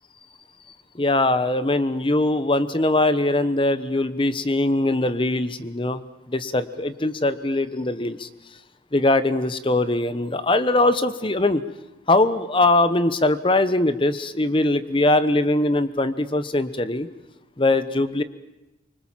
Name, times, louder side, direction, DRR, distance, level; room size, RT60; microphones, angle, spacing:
voice 1, 0.9-6.0 6.3-8.3 8.9-11.6 12.1-17.1 17.6-18.2, left 2 dB, 30° left, 13 dB, 1.0 m, -21 dB
25.0 x 24.5 x 7.5 m, 0.97 s
head